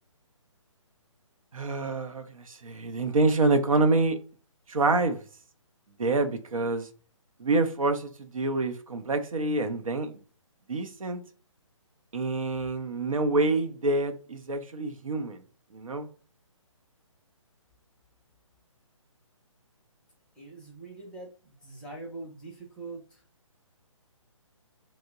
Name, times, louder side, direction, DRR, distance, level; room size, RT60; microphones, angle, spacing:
voice 1, 1.5-4.2 4.7-5.2 6.0-6.9 7.4-10.2 10.7-11.2 12.1-15.4 15.7-16.1, right 2 dB, 80° right, 0.6 m, -27 dB
voice 2, 20.3-23.2, right 2 dB, 5° left, 0.6 m, -43 dB
3.0 x 2.1 x 3.4 m
figure-of-eight pair, 145°, 17 cm